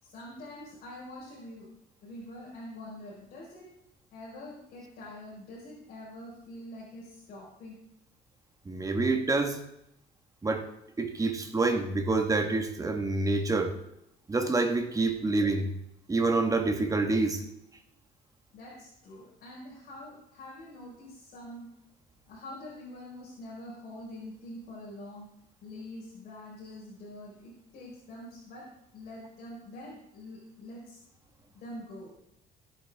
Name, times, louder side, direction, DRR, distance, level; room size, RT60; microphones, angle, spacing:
voice 1, 0.0-1.7 2.0-3.8 4.1-7.8 18.5-21.7 22.3-25.3 25.6-31.0 31.5-32.2, left 1 dB, 60° left, -5 dB, 4.6 m, -45 dB
voice 2, 8.6-9.6 10.4-10.7 11.0-13.8 14.3-15.7 16.1-17.4, right 3 dB, 20° right, 5 dB, 1.6 m, -27 dB
17.5 x 8.2 x 3.6 m, 0.81 s
cardioid pair, 110°, 17 cm